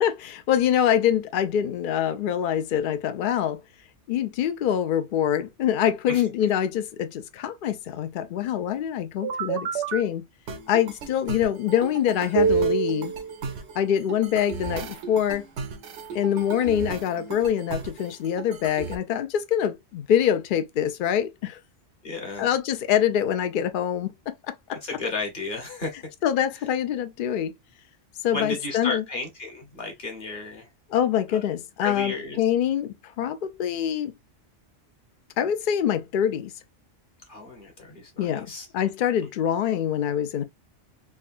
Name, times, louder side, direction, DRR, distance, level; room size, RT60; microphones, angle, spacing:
voice 1, 0.0-3.6 4.1-10.2 10.7-13.1 13.7-15.4 16.1-21.6 22.4-24.3 24.7-24.8 26.2-27.5 28.2-29.0 30.9-34.1 35.4-36.5 38.2-40.4, left 9 dB, 60° left, 0.5 m, -25 dB
sound 1, 9.2-10.0 10.5-19.0, right 6 dB, 70° right, 0.9 m, -30 dB
voice 2, 22.0-22.5 24.8-25.9 28.3-30.7 31.3-31.4 31.8-32.4 37.3-38.7, left 3 dB, 45° left, 1.1 m, -33 dB
3.6 x 2.2 x 2.4 m
omnidirectional pair, 1.3 m